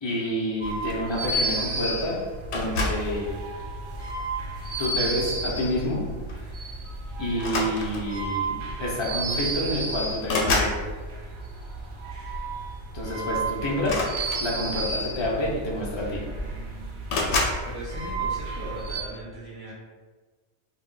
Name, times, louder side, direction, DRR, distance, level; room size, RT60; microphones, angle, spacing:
voice 1, 0.0-2.2 2.5-3.3 4.8-6.0 6.6-6.7 7.2-10.8 12.9-14.1 14.4-16.2, left 1 dB, 40° left, -4 dB, 0.4 m, -28 dB
sound 1, 0.6-19.0, right 2 dB, 60° right, 0.6 m, -32 dB
sound 2, 2.5-3.1 4.0-4.3 5.8-6.0 6.3-6.5 7.3-8.2 9.2-9.3 9.6-10.8 13.8-14.9 15.8-15.9 16.1-16.6 17.1-17.6, left 2 dB, 70° left, 0.8 m, -28 dB
voice 2, 17.6-19.7, right 1 dB, 20° right, -9 dB, 0.9 m, -38 dB
2.2 x 2.1 x 3.8 m, 1.4 s
omnidirectional pair, 1.2 m